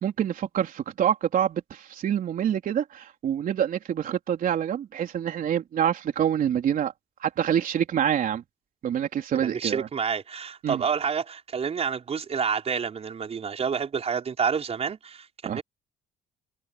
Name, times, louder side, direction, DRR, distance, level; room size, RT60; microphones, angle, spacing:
voice 1, 0.0-6.9 7.2-8.4 8.8-9.9 10.6-10.8 15.4-15.6, right 9 dB, 55° right, 3.8 m, -26 dB
voice 2, 9.4-15.6, right 6 dB, 40° right, 5.3 m, -29 dB
cardioid pair, 110°, 17 cm